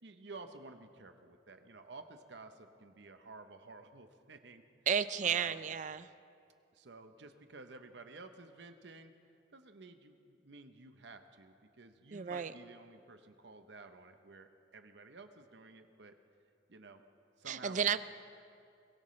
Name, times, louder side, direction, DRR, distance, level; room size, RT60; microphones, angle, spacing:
voice 1, 0.0-4.6 5.2-5.7 6.7-9.1 9.5-16.1 16.7-17.0 17.4-18.0, right 3 dB, 65° right, 8 dB, 0.8 m, -52 dB
voice 2, 4.9-6.1 12.1-12.5 17.5-18.0, right 7 dB, 40° right, 15 dB, 0.4 m, -32 dB
22.5 x 17.0 x 3.2 m, 2.5 s
head